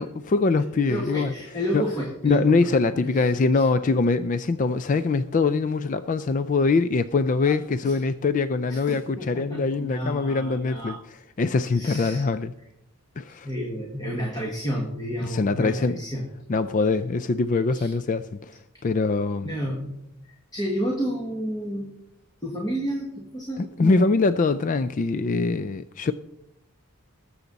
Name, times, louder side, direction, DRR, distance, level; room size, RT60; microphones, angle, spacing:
voice 1, 0.0-1.3 1.7-1.8 2.2-11.0 11.4-12.5 13.2-13.5 15.2-16.0 16.5-19.5 23.6-26.1, left 4 dB, 35° left, 0.3 m, -23 dB
voice 2, 0.6-2.7 3.1-3.7 7.5-7.6 7.8-8.0 8.7-11.0 11.6-12.3 13.4-16.3 17.7-17.9 19.4-20.0 20.2-21.9 22.4-24.1, equal, 15° left, 1.6 m, -31 dB
19.5 x 7.2 x 4.0 m
head